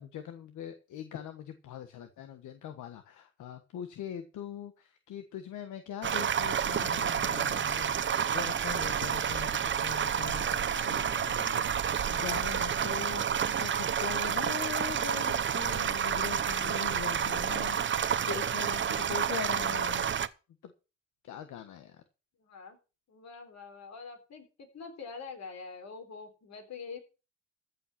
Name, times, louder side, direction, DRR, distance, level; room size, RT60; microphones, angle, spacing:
voice 1, 0.0-20.1 20.6-20.7 21.2-22.0, left 10 dB, 80° left, 8 dB, 1.5 m, -42 dB
sound 1, 6.0-20.3, right 8 dB, 40° right, 0.8 m, -30 dB
voice 2, 22.4-22.8 23.1-27.0, left 5 dB, 60° left, 5 dB, 3.9 m, -45 dB
14.5 x 5.6 x 7.4 m, 0.32 s
cardioid pair, 90°, 30 cm